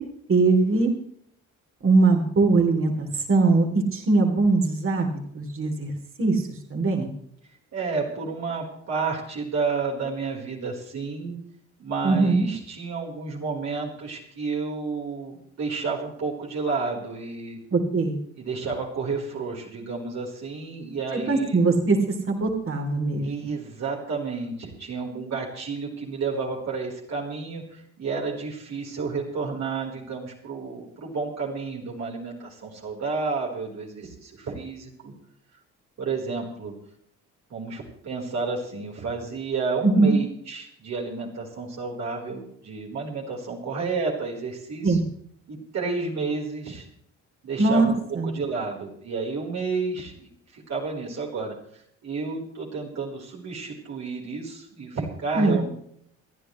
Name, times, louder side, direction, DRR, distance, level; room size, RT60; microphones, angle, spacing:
voice 1, 0.3-0.9 1.8-5.9 6.2-6.4 6.7-7.1 12.0-12.5 17.7-18.2 21.3-23.3 39.8-40.1 44.8-45.0 47.6-47.9 48.2-48.3 55.4-55.6, right 3 dB, 45° right, 3 dB, 3.4 m, -21 dB
voice 2, 7.7-11.4 11.8-17.6 18.4-21.6 23.2-35.1 36.0-36.7 37.5-45.0 45.5-46.9 47.4-55.7, right 4 dB, 60° right, -2 dB, 4.4 m, -31 dB
28.0 x 11.0 x 3.2 m, 0.67 s
cardioid pair, 90°, 30 cm